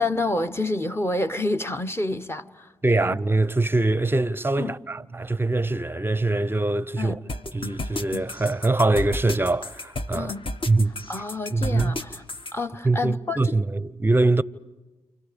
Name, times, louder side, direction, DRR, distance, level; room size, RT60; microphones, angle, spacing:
voice 1, 0.0-2.7 2.9-3.2 4.6-4.7 7.0-7.2 10.1-10.4 11.1-12.2 12.5-13.6, left 2 dB, 20° left, 1.1 m, -28 dB
voice 2, 2.8-7.2 7.5-10.3 10.7-10.9 11.5-12.0 12.8-14.4, right 2 dB, 15° right, 0.7 m, -23 dB
sound 1, 7.3-12.5, left 2 dB, 40° left, 1.9 m, -32 dB
29.0 x 29.0 x 5.2 m
supercardioid pair, 45°, 13 cm